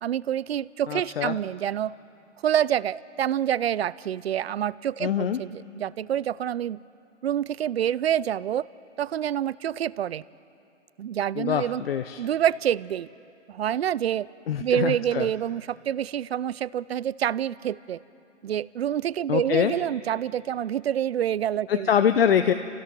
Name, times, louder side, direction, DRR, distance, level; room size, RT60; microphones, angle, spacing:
voice 1, 0.0-2.0 2.4-6.8 7.2-8.7 9.0-10.2 11.0-11.8 12.2-13.1 13.5-14.3 14.6-18.0 18.4-21.9, right 10 dB, 55° right, 21 dB, 0.5 m, -27 dB
voice 2, 0.9-1.4 5.0-5.4 11.3-12.2 14.5-15.3 19.3-19.7 21.7-22.5, left 8 dB, 50° left, 9 dB, 0.7 m, -24 dB
27.5 x 16.0 x 6.0 m, 2.7 s
hypercardioid pair, 155°, 37 cm